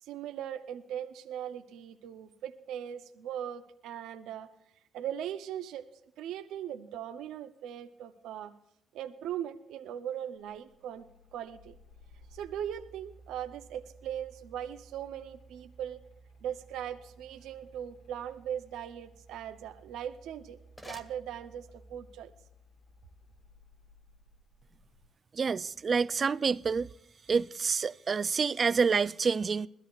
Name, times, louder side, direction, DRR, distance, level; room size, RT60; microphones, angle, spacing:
voice 1, 0.0-4.5 4.9-5.9 6.2-8.5 8.9-11.7 12.3-16.0 16.4-20.6 20.8-22.3, right 10 dB, 85° right, 0.8 m, -39 dB
sound 1, 10.4-25.1, right 2 dB, 85° left, 2.0 m, -57 dB
sound 2, 20.6-22.0, left 1 dB, 10° left, 1.9 m, -52 dB
voice 2, 25.3-26.9 27.3-29.7, right 5 dB, 40° right, 0.5 m, -28 dB
21.0 x 14.0 x 2.5 m
cardioid pair, 90°, 0 cm